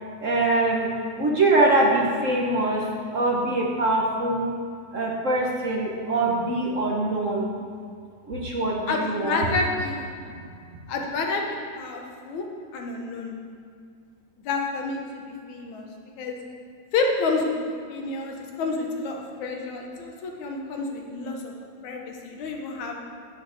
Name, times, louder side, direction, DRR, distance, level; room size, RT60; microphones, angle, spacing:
voice 1, 0.2-0.9 1.2-2.8 3.1-4.5 4.9-7.5 8.3-9.4, right 2 dB, 55° right, -2 dB, 0.8 m, -23 dB
voice 2, 8.9-10.1 10.9-12.5 12.7-13.3 14.4-15.9 16.2-16.4 16.9-21.5 21.8-23.0, left 3 dB, 75° left, 1 dB, 2.6 m, -29 dB
10.5 x 7.6 x 6.5 m, 2.2 s
omnidirectional pair, 3.4 m